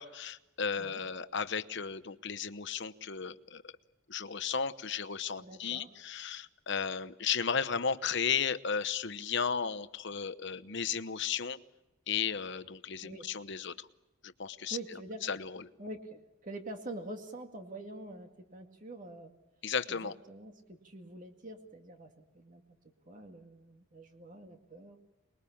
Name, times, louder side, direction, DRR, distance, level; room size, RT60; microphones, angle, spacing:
voice 1, 0.0-3.6 4.1-11.6 12.1-13.9 14.4-14.8 15.2-15.6 19.6-20.1, left 6 dB, 55° left, 12 dB, 0.9 m, -34 dB
voice 2, 5.4-5.9 13.0-13.3 14.7-15.3 15.8-19.3 19.9-22.6 23.1-25.0, right 2 dB, 40° right, 4 dB, 2.1 m, -45 dB
26.5 x 21.5 x 8.6 m, 0.98 s
head